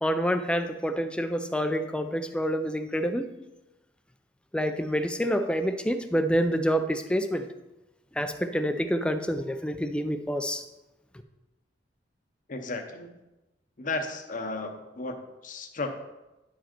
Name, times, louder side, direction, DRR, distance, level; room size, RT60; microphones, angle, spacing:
voice 1, 0.0-3.2 4.5-7.4 8.2-10.6, equal, 5° left, 9 dB, 0.4 m, -27 dB
voice 2, 12.5-13.1 13.8-15.1 15.4-16.0, left 3 dB, 45° left, 6 dB, 0.8 m, -34 dB
10.0 x 4.9 x 4.4 m, 1.0 s
head